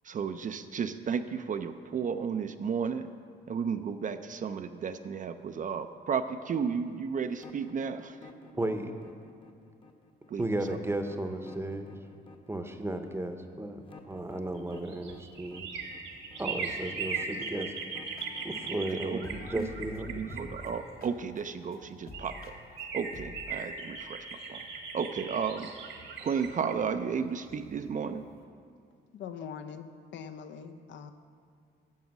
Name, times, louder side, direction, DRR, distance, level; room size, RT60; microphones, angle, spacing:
voice 1, 0.0-3.1 3.5-8.2 10.3-10.4 18.9-19.7 20.1-22.5 22.9-24.6 24.9-25.7 26.2-28.3, right 6 dB, 40° right, 9 dB, 0.5 m, -33 dB
sound 1, 7.3-20.2, left 4 dB, 25° left, 0.9 m, -53 dB
voice 2, 8.6-8.9 10.4-11.9 12.5-15.7 16.4-17.7 18.4-20.2, right 1 dB, 10° right, 7 dB, 0.8 m, -34 dB
sound 2, 14.4-21.3 21.8-21.9 22.1-27.9 28.2-28.3, right 5 dB, 70° right, 1.5 m, -39 dB
sound 3, 18.0-18.9 19.2-23.6, left 2 dB, 50° left, 1.0 m, -48 dB
voice 3, 29.1-31.1, left 7 dB, 65° left, 9 dB, 0.6 m, -42 dB
9.5 x 7.1 x 6.0 m, 2.2 s
cardioid pair, 90°, 20 cm